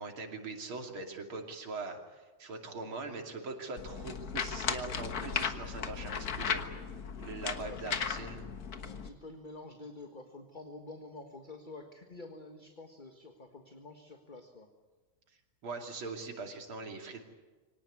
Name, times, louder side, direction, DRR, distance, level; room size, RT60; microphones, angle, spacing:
voice 1, 0.0-6.6 7.2-8.5 15.6-17.2, right 3 dB, 80° right, 3 dB, 3.5 m, -42 dB
sound 1, 3.8-9.1, left 6 dB, 50° left, 1.7 m, -36 dB
voice 2, 7.6-8.0 8.8-14.7, left 2 dB, 25° left, 5 dB, 1.6 m, -48 dB
24.5 x 18.5 x 9.5 m, 1.3 s
omnidirectional pair, 2.2 m